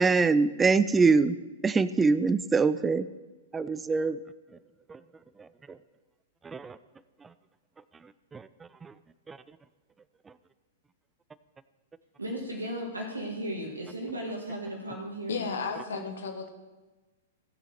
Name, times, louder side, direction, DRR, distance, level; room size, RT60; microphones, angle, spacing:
voice 1, 0.0-1.4 1.6-3.1 3.5-4.2 4.9-5.0 6.4-6.8 8.3-8.5 8.8-8.9 9.3-9.4, right 4 dB, 15° right, 15 dB, 0.4 m, -24 dB
voice 2, 12.2-15.5 15.9-16.1, right 1 dB, 85° right, 0 dB, 1.8 m, -36 dB
voice 3, 15.3-16.5, left 5 dB, 65° left, 5 dB, 1.6 m, -33 dB
16.5 x 6.3 x 4.4 m, 1.2 s
figure-of-eight pair, 105°, 0 cm